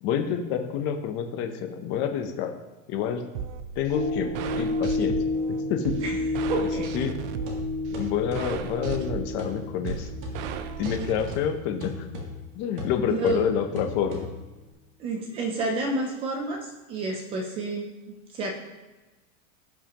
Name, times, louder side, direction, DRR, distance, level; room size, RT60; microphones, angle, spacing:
voice 1, 0.0-2.5 2.9-3.3 3.8-5.2 5.5-6.0 6.6-6.7 6.9-7.2 8.0-10.1 10.8-12.1 12.5-14.3, left 8 dB, 30° left, 6 dB, 0.7 m, -28 dB
sound 1, 3.3-11.3, right 8 dB, 60° right, 0.7 m, -36 dB
sound 2, 3.9-12.3 12.8-12.9, left 2 dB, 70° left, 1.5 m, -32 dB
voice 2, 6.5-6.9 13.1-13.5 15.0-17.9 18.3-18.5, right 2 dB, 15° right, 3 dB, 0.4 m, -30 dB
sound 3, 7.0-14.7, left 2 dB, 30° right, 1.7 m, -39 dB
16.0 x 5.6 x 2.9 m, 1.2 s
supercardioid pair, 175°, 39 cm